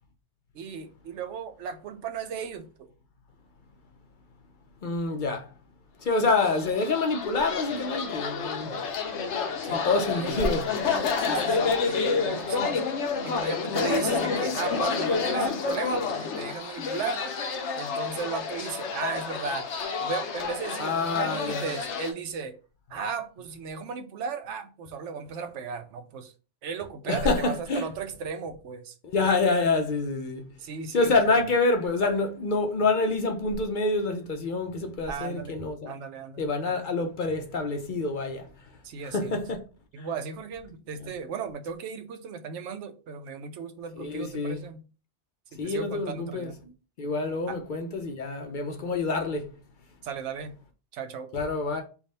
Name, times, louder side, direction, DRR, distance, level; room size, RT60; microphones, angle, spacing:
voice 1, 0.5-2.9 9.6-10.4 11.2-12.8 13.2-17.3 17.8-19.7 20.0-22.5 22.9-26.3 26.6-29.0 30.6-31.4 35.1-35.6 35.9-36.4 36.7-36.8 38.8-39.4 39.9-44.8 45.5-46.6 47.5-47.6 50.0-50.5 50.9-51.3, right 6 dB, 85° right, 0.9 m, -36 dB
voice 2, 4.8-5.5 6.0-8.7 9.6-10.7 20.8-21.6 27.1-27.9 29.0-30.5 30.9-35.9 36.4-38.5 39.0-39.6 40.0-40.1 41.0-41.1 44.0-44.6 45.6-46.7 47.0-49.5 51.3-51.8, left 3 dB, 55° left, 0.6 m, -27 dB
sound 1, 6.4-22.1, left 5 dB, 80° left, 1.0 m, -29 dB
3.5 x 2.4 x 3.9 m
omnidirectional pair, 1.2 m